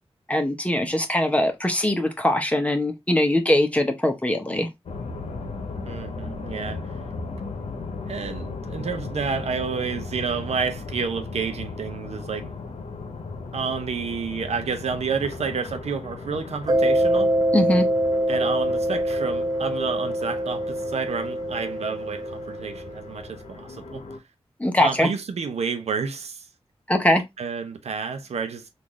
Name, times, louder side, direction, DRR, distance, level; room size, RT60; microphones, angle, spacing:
voice 1, 0.3-4.7 17.5-17.8 24.6-25.1 26.9-27.2, left 1 dB, 10° left, 0.9 m, -21 dB
sound 1, 4.9-24.2, left 3 dB, 85° left, 0.8 m, -37 dB
voice 2, 5.9-6.9 8.1-12.5 13.5-17.3 18.3-24.0 24.8-26.5 27.4-28.7, right 5 dB, 90° right, 0.6 m, -30 dB
Mallet percussion, 16.7-23.1, right 1 dB, 35° right, 0.5 m, -24 dB
3.7 x 2.5 x 3.0 m
wide cardioid pair, 75°, 11 cm